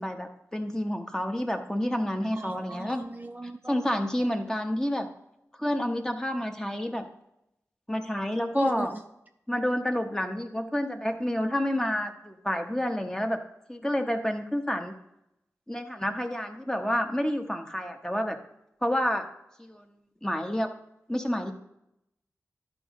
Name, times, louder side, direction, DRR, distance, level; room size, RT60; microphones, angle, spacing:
voice 1, 0.0-3.0 3.7-5.1 5.6-7.1 7.9-8.9 9.5-13.4 13.7-14.9 15.7-18.4 18.8-19.2 19.6-19.8 20.2-20.7 21.1-21.5, equal, 10° left, 4 dB, 1.0 m, -29 dB
voice 2, 2.3-3.9 8.5-9.0, right 2 dB, 30° right, 5 dB, 0.5 m, -36 dB
11.5 x 5.1 x 3.7 m, 0.81 s
cardioid pair, 50°, 6 cm